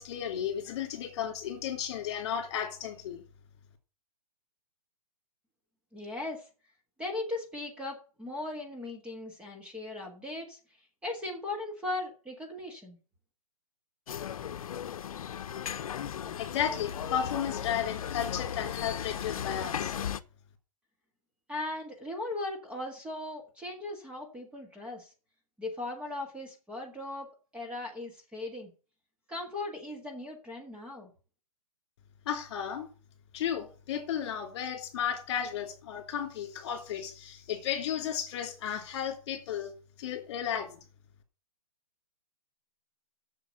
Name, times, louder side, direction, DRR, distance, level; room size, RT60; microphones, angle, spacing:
voice 1, 0.0-3.2 16.4-19.9 32.3-32.9 33.3-39.7 40.0-40.8, left 9 dB, 45° left, 2.9 m, -34 dB
voice 2, 5.9-6.5 7.0-10.6 11.0-13.0 21.5-25.1 25.6-27.3 27.5-28.7 29.3-31.1, left 2 dB, 5° right, 1.7 m, -38 dB
sound 1, 14.1-20.2, left 9 dB, 70° left, 0.8 m, -36 dB
8.2 x 7.1 x 7.6 m
hypercardioid pair, 155°, 19 cm